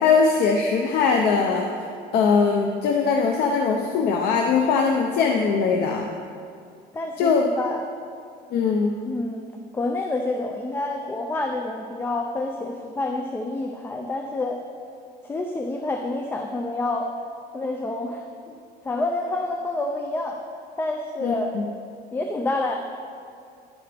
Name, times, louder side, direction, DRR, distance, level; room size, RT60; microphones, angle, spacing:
voice 1, 0.0-1.7 2.1-6.1 7.2-7.5 8.5-8.9 21.2-21.7, left 5 dB, 70° left, 2 dB, 0.7 m, -21 dB
voice 2, 6.9-7.8 9.1-9.5 9.7-14.6 15.2-17.1 17.5-18.6 18.8-20.4 20.8-21.5 22.1-22.8, left 2 dB, 15° left, 3 dB, 0.4 m, -28 dB
10.5 x 9.5 x 3.4 m, 2.3 s
cardioid pair, 165°, 17 cm